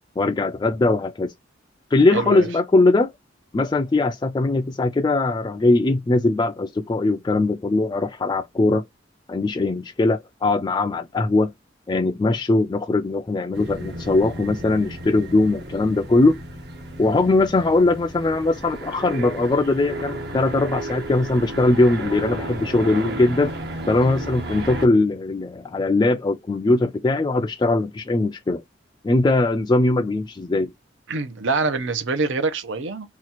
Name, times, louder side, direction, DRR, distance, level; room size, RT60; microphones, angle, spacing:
voice 1, 0.2-1.3 1.9-3.1 3.5-8.8 9.3-11.5 11.9-16.4 17.0-23.5 23.9-28.6 29.0-30.7, left 2 dB, 20° left, 0.3 m, -20 dB
voice 2, 2.1-2.5 31.1-33.1, right 3 dB, 75° right, 0.7 m, -25 dB
sound 1, 13.5-24.9, right 1 dB, 60° right, 1.0 m, -33 dB
2.9 x 2.3 x 4.0 m
head